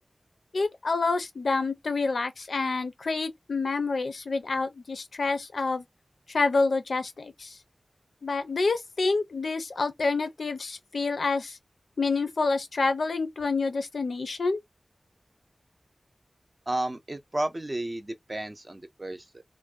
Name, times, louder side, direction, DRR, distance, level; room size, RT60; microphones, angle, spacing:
voice 1, 0.5-5.8 6.3-7.6 8.2-11.6 12.0-14.6, left 3 dB, 90° left, 0.4 m, -28 dB
voice 2, 16.7-19.4, right 1 dB, 30° right, 0.5 m, -32 dB
2.5 x 2.1 x 2.4 m
wide cardioid pair, 75°, 0 cm